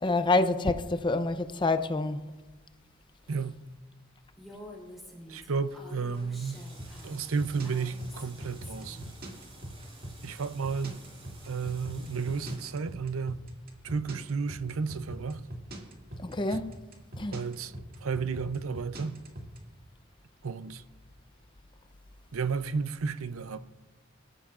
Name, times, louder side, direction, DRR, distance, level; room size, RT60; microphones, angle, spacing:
voice 1, 0.0-2.3 16.2-16.7 17.2-17.4, left 2 dB, 25° left, 0.6 m, -27 dB
voice 2, 3.3-3.6 5.3-6.6 7.0-9.1 10.2-11.0 11.4-13.4 13.8-15.4 16.5-16.6 17.3-17.7 18.0-19.2 20.4-20.8 22.3-23.6, right 5 dB, 90° right, 0.6 m, -32 dB
Female speech woman speaking, 4.4-9.0, left 1 dB, ahead, 3.6 m, -48 dB
sound 1, 6.0-12.6, right 2 dB, 30° right, 5.7 m, -54 dB
sound 2, 6.8-19.6, right 1 dB, 45° right, 2.1 m, -41 dB
24.0 x 13.5 x 2.5 m
head